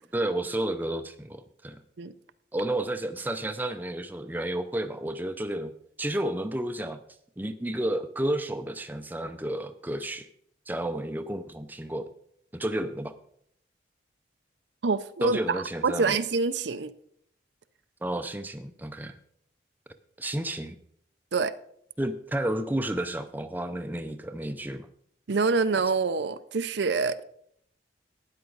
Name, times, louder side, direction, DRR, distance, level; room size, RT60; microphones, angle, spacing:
voice 1, 0.1-1.8 2.5-5.7 6.0-7.0 7.4-10.3 10.7-12.1 12.5-13.1 15.2-16.2 18.0-19.2 20.2-20.8 22.0-24.9, right 1 dB, 10° right, 0.5 m, -31 dB
voice 2, 14.8-16.9 21.3-21.5 25.3-27.2, right 4 dB, 70° right, 0.5 m, -26 dB
12.5 x 9.6 x 3.9 m
head